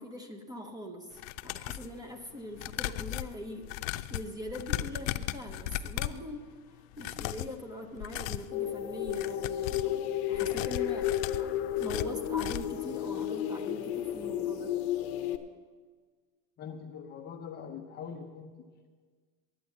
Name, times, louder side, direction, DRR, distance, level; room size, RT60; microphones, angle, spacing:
voice 1, 0.0-6.5 7.0-11.1 11.4-11.5 11.8-14.8, left 1 dB, 10° right, 6 dB, 0.7 m, -42 dB
sound 1, 1.1-1.9 2.5-6.3 6.9-7.6 8.0-8.5 9.0-9.9 10.3-12.8 13.2-13.3 13.6-13.7, left 14 dB, 80° left, 0.6 m, -37 dB
sound 2, 8.5-15.4, left 11 dB, 60° left, 1.0 m, -32 dB
voice 2, 16.6-18.6, left 6 dB, 25° left, 4 dB, 0.5 m, -43 dB
10.0 x 9.1 x 7.9 m, 1.5 s
cardioid pair, 165°, 40 cm